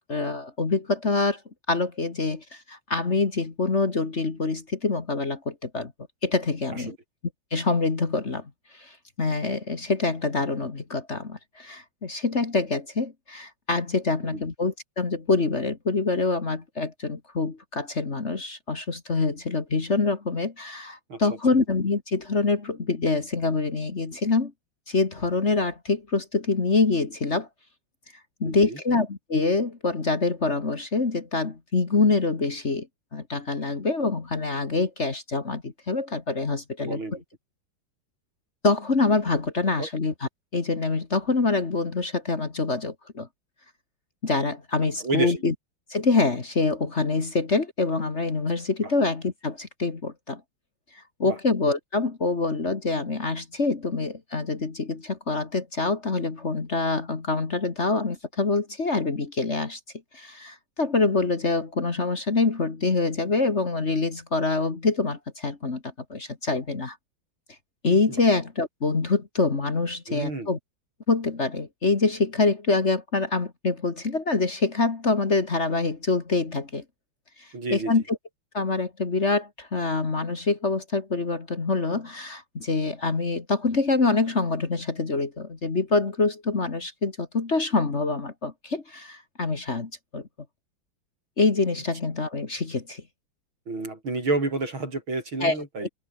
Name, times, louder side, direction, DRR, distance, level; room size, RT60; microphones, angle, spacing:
voice 1, 0.0-1.4 1.7-5.9 6.2-6.9 7.5-24.5 24.9-27.5 28.4-32.9 33.1-37.0 38.6-43.3 44.2-45.5 45.9-50.4 50.9-59.8 60.1-67.0 67.8-70.6 71.1-76.8 77.4-78.2 78.5-90.3 91.4-93.0 95.4-95.9, left 3 dB, 35° left, 2.1 m, -25 dB
voice 2, 28.4-28.8 36.8-37.2 39.8-39.9 45.0-45.4 48.8-48.9 51.2-51.4 70.1-70.5 77.5-78.0 93.7-95.9, right 3 dB, 75° right, 7.2 m, -30 dB
omnidirectional pair, 2.3 m